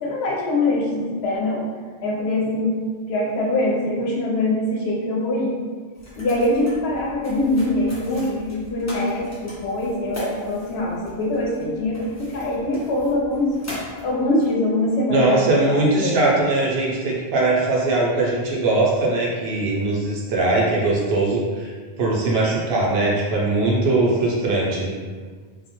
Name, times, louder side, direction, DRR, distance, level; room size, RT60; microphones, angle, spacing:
voice 1, 0.0-1.6 2.0-2.8 3.1-5.5 6.2-13.6 14.0-16.2, left 1 dB, 85° left, -3 dB, 0.9 m, -23 dB
sound 1, 6.0-14.9, equal, 25° left, 0.4 m, -39 dB
voice 2, 15.1-21.7 22.0-24.9, right 2 dB, 80° right, -4 dB, 0.9 m, -20 dB
2.4 x 2.1 x 2.9 m, 1.5 s
omnidirectional pair, 1.0 m